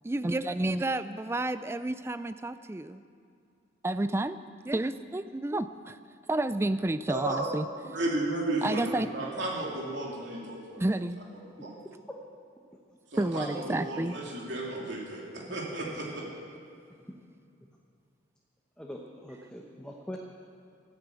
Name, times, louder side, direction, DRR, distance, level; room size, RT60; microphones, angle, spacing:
voice 1, 0.0-3.0 3.8-4.4 4.6-6.0 6.3-7.7 8.6-9.1 10.8-11.2 13.2-14.2, right 2 dB, 15° right, 12 dB, 0.3 m, -30 dB
voice 2, 7.1-7.4 7.9-10.8 11.5-11.7 13.1-16.2, right 2 dB, 70° right, -4 dB, 2.9 m, -33 dB
voice 3, 18.8-20.2, equal, 5° left, -1 dB, 0.9 m, -43 dB
14.0 x 9.8 x 8.3 m, 2.4 s
head